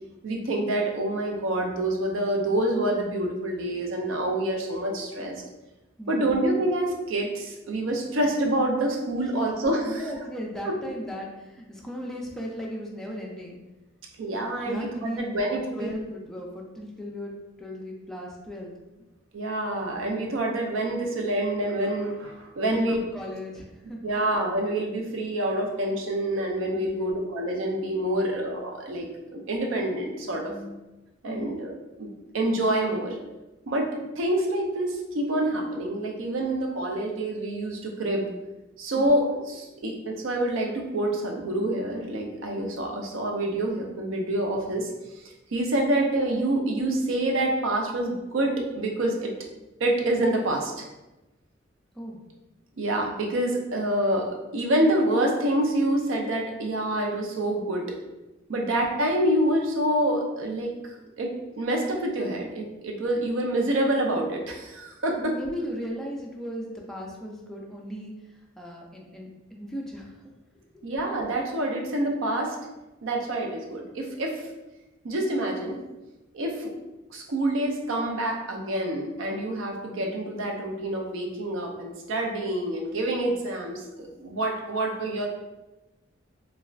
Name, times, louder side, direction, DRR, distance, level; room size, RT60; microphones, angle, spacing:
voice 1, 0.2-5.4 6.1-10.1 10.6-10.7 14.2-14.9 15.2-15.9 19.3-23.1 24.0-30.5 31.2-31.7 32.0-32.1 32.3-33.2 33.7-33.9 34.2-38.3 38.8-44.9 45.5-49.3 49.8-50.9 52.8-57.8 58.5-61.3 61.6-65.3 70.8-72.6 73.0-74.5 75.0-75.8 76.3-76.7 77.1-85.3, right 1 dB, 70° right, 1 dB, 0.5 m, -27 dB
voice 2, 6.0-6.3 9.9-13.6 14.6-15.5 15.7-17.3 17.6-18.7 22.7-24.0 26.7-27.2 28.1-28.4 30.5-30.8 31.2-31.5 39.0-39.1 51.9-52.2 65.2-68.1 68.6-70.1, equal, ahead, -2 dB, 0.3 m, -36 dB
3.2 x 2.3 x 2.3 m, 1.0 s
head